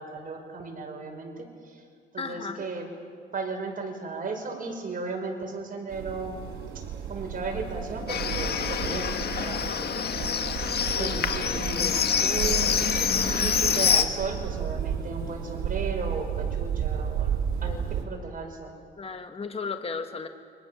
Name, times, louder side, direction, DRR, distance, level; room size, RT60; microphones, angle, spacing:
voice 1, 0.0-1.8 2.1-2.8 3.3-6.4 6.7-6.8 7.1-9.1 9.4-10.4 10.9-12.7 13.4-18.7, right 4 dB, 45° right, 3 dB, 5.9 m, -35 dB
voice 2, 2.2-2.6 11.0-12.0 13.0-13.5 17.6-17.8 19.0-20.3, left 4 dB, 30° left, 6 dB, 1.7 m, -36 dB
sound 1, 5.9-18.0, right 8 dB, 85° right, 4.0 m, -33 dB
Livestock farm animals working animals, 8.1-14.0, left 7 dB, 55° left, 1.9 m, -26 dB
29.5 x 24.5 x 7.3 m, 2.2 s
cardioid pair, 90°, 20 cm